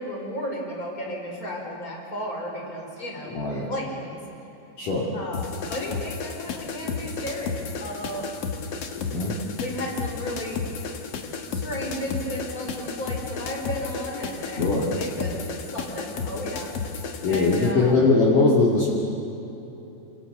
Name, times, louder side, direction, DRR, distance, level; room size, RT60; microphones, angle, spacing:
voice 1, 0.0-3.4 3.7-4.2 5.1-8.3 9.6-10.6 11.5-18.1, equal, 20° left, 0 dB, 4.8 m, -34 dB
voice 2, 3.3-3.7 4.8-5.1 8.9-9.6 14.6-14.9 17.2-18.9, left 3 dB, 50° left, -4 dB, 3.8 m, -21 dB
sound 1, 5.3-17.7, left 5 dB, 70° left, 1.5 m, -33 dB
29.0 x 27.0 x 6.8 m, 3.0 s
omnidirectional pair, 5.1 m